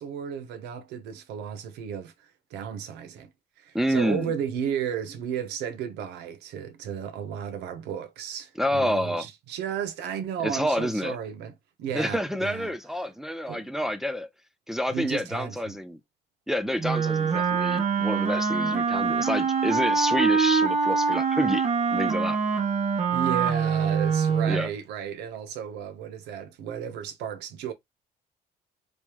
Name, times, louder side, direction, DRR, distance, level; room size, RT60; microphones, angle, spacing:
voice 1, 0.0-3.3 3.6-11.5 11.8-12.7 13.5-13.6 14.9-15.8 23.1-27.7, right 8 dB, 85° right, 0.7 m, -34 dB
voice 2, 3.7-4.3 8.6-9.3 10.4-11.2 11.9-14.3 14.7-16.0 16.5-22.4 24.5-24.7, equal, ahead, 0.4 m, -28 dB
Wind instrument woodwind instrument, 16.8-24.7, right 5 dB, 40° right, 0.9 m, -24 dB
3.2 x 3.2 x 3.0 m
cardioid pair, 110°, 17 cm